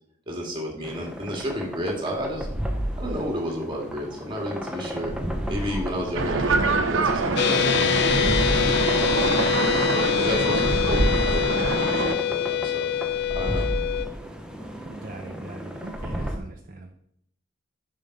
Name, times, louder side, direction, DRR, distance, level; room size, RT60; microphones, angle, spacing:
voice 1, 0.3-2.5 3.0-5.1 5.5-12.9 13.3-13.7, equal, 25° right, 0 dB, 2.0 m, -32 dB
sound 1, 0.8-16.4, equal, 5° right, 0.8 m, -33 dB
sound 2, 6.2-12.1, right 3 dB, 80° right, 0.8 m, -25 dB
sound 3, 7.4-14.1, left 10 dB, 60° left, 0.6 m, -24 dB
voice 2, 14.9-16.9, right 2 dB, 45° right, 2 dB, 0.7 m, -40 dB
7.4 x 5.3 x 5.4 m, 0.71 s
head